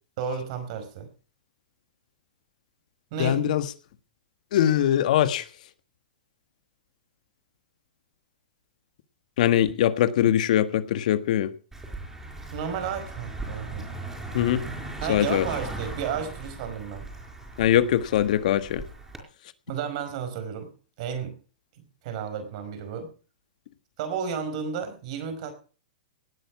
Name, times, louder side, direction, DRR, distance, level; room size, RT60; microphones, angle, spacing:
voice 1, 0.2-1.1 3.1-3.5 12.5-14.0 15.0-17.1 19.7-20.7 21.0-21.4 21.8-23.1 24.0-25.5, right 7 dB, 50° right, 9 dB, 4.8 m, -32 dB
voice 2, 3.2-3.7 4.5-5.5 9.4-11.5 14.3-14.6 15.1-15.5 17.6-18.8, left 11 dB, 60° left, 12 dB, 1.4 m, -22 dB
Car passing by, 11.7-19.2, right 2 dB, 10° right, 4.8 m, -38 dB
18.0 x 9.2 x 6.0 m, 0.38 s
hypercardioid pair, 135°, 5 cm